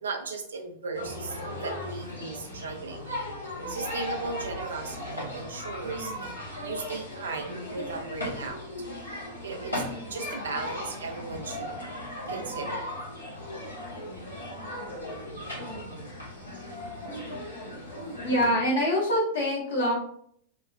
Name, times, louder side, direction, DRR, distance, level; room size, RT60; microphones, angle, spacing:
voice 1, 0.0-3.1 3.7-8.9 9.4-9.7 10.1-12.9, right 4 dB, 75° right, 4 dB, 0.4 m, -37 dB
sound 1, 0.9-18.5, left 1 dB, 90° left, 0.9 m, -37 dB
voice 2, 18.2-19.9, equal, 70° left, -4 dB, 1.2 m, -24 dB
2.9 x 2.2 x 2.3 m, 0.65 s
figure-of-eight pair, 90°, 0 cm